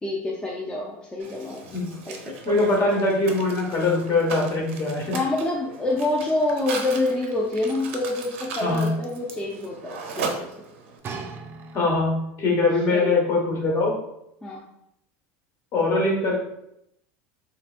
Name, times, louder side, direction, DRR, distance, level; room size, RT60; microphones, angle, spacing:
voice 1, 0.0-1.6 2.1-2.4 5.1-10.5 12.9-13.2 14.4-14.6, left 2 dB, 15° left, -3 dB, 0.5 m, -27 dB
Mechanisms, 1.2-11.0, right 4 dB, 90° right, 0.6 m, -37 dB
voice 2, 2.4-5.2 8.6-8.9 11.7-13.9 15.7-16.4, left 2 dB, 45° left, -2 dB, 1.3 m, -22 dB
sound 1, 11.0-12.3 13.1-13.2, right 4 dB, 35° right, 0.5 m, -38 dB
3.4 x 3.2 x 2.4 m, 0.79 s
supercardioid pair, 115°, 7 cm